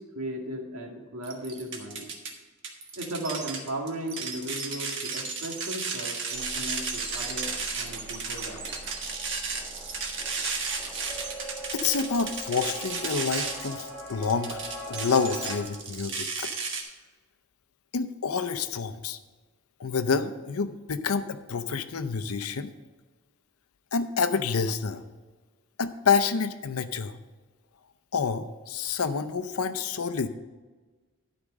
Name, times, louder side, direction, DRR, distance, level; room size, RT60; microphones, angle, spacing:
voice 1, 0.0-2.1 3.0-8.7, right 1 dB, 90° right, 1 dB, 2.0 m, -36 dB
sound 1, 1.2-2.3 2.6-16.8, right 4 dB, 55° right, 1.5 m, -34 dB
sound 2, 6.3-15.6, equal, 10° left, 1.7 m, -42 dB
voice 2, 11.7-14.6 14.9-16.5 17.9-19.2 19.8-22.7 23.9-25.1 25.8-27.2 28.1-30.3, left 5 dB, 90° left, 11 dB, 0.7 m, -28 dB
12.0 x 5.2 x 6.2 m, 1.3 s
head